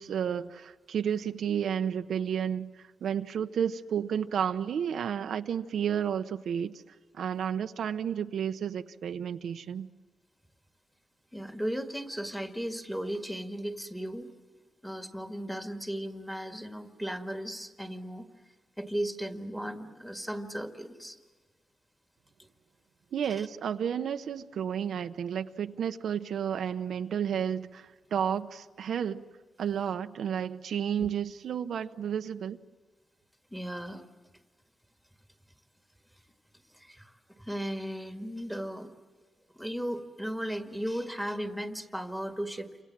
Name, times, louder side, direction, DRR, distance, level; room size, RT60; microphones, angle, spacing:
voice 1, 0.0-9.9 23.1-29.2 29.6-32.6, right 8 dB, 85° right, 0.8 m, -32 dB
voice 2, 11.3-14.3 14.8-18.3 18.8-21.2 31.0-31.1 33.5-34.0 36.7-38.9 39.6-42.7, equal, ahead, 1.9 m, -36 dB
29.5 x 26.0 x 7.5 m
wide cardioid pair, 145°, 0 cm